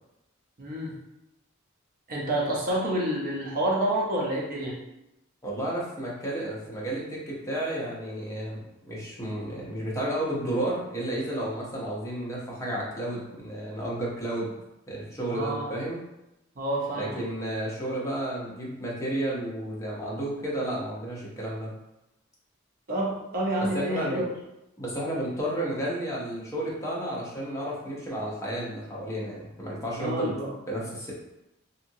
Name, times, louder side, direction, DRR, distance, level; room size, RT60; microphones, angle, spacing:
voice 1, 0.6-0.9 2.1-4.8 15.3-15.7 16.6-17.2 22.9-24.2 30.0-30.5, right 1 dB, 45° right, -4 dB, 0.6 m, -28 dB
voice 2, 5.4-14.5 14.9-16.0 16.9-21.7 23.7-24.2 24.8-30.3 30.7-31.1, right 1 dB, 15° left, -5 dB, 0.7 m, -32 dB
2.8 x 2.5 x 2.7 m, 0.90 s
head